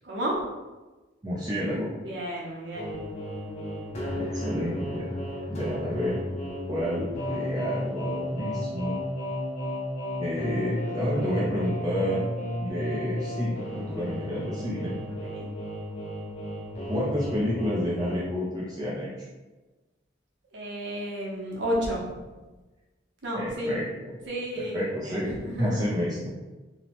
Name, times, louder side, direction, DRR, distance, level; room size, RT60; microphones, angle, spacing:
voice 1, 0.0-0.4 2.0-2.9 15.1-15.5 20.5-22.2 23.2-23.7 24.3-24.8 25.0-25.9, equal, 65° right, -3 dB, 0.7 m, -32 dB
voice 2, 1.2-1.9 4.1-5.1 5.5-6.2 6.7-9.0 10.2-12.3 12.6-14.9 16.9-19.1 23.3-23.8 24.6-26.3, equal, 20° right, -7 dB, 0.5 m, -30 dB
sound 1, 2.7-18.2, left 1 dB, 35° left, 0.5 m, -33 dB
2.7 x 2.0 x 2.8 m, 1.2 s
head